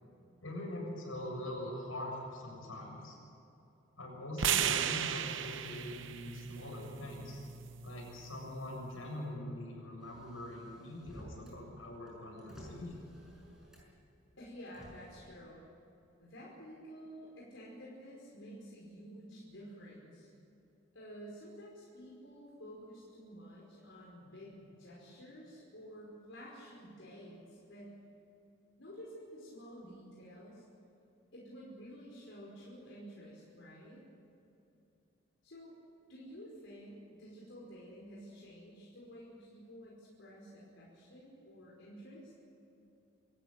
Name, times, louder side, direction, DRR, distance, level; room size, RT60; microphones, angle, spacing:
voice 1, 0.4-3.1 4.0-7.4 7.8-13.0, left 1 dB, 85° left, -1 dB, 7.4 m, -43 dB
sound 1, 4.4-8.6, right 9 dB, 65° right, 0.9 m, -36 dB
Motor vehicle (road), 10.0-11.6 11.9-14.1 14.7-15.1, equal, 5° right, 6.1 m, -53 dB
voice 2, 14.4-15.6 16.2-20.3 20.9-27.9 28.8-30.6 31.3-34.0 35.4-35.7 36.1-42.3, equal, 65° left, -5 dB, 5.2 m, -51 dB
25.5 x 14.0 x 8.9 m, 2.7 s
head